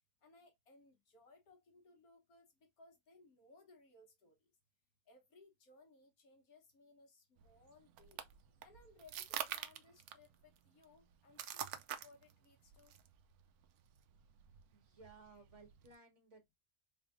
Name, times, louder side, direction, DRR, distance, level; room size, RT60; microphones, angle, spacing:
voice 1, 0.2-4.5 5.1-8.2 8.6-11.7 12.0-12.9, left 3 dB, 75° left, 1.7 m, -64 dB
sound 1, 7.4-16.0, right 10 dB, 80° right, 1.1 m, -48 dB
voice 2, 14.7-16.6, right 3 dB, 50° right, 1.9 m, -60 dB
3.7 x 3.5 x 2.5 m
omnidirectional pair, 1.6 m